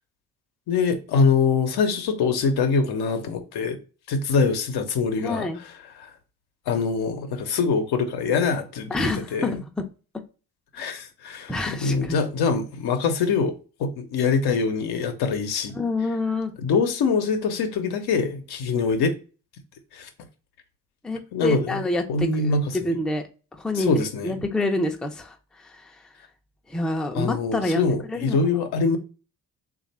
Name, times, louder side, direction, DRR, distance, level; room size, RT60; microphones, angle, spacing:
voice 1, 0.7-3.8 4.1-5.5 6.0-6.1 6.7-9.5 10.7-13.5 13.8-15.7 16.6-19.1 19.9-20.1 21.3-21.8 22.1-22.9 23.7-24.4 27.1-29.0, left 4 dB, 65° left, 0.8 m, -24 dB
voice 2, 5.2-5.6 8.9-9.8 11.5-12.2 15.8-16.5 21.0-22.5 22.8-23.2 23.6-23.9 24.2-25.3 26.7-27.8 28.1-28.4, left 2 dB, ahead, 0.5 m, -27 dB
3.2 x 2.5 x 4.2 m
hypercardioid pair, 55°, 42 cm